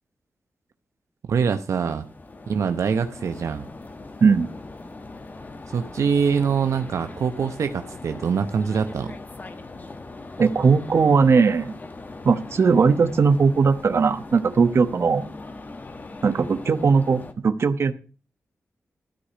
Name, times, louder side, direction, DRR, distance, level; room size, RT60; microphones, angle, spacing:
voice 1, 1.3-2.1 2.5-3.7 5.7-9.1, right 6 dB, 80° right, 8 dB, 0.8 m, -24 dB
sound 1, 1.6-17.3, left 3 dB, 35° left, 1.4 m, -40 dB
voice 2, 10.4-11.7 12.2-15.3 16.2-17.9, right 5 dB, 60° right, 11 dB, 1.0 m, -19 dB
13.0 x 5.0 x 8.5 m, 0.37 s
wide cardioid pair, 95°, 5 cm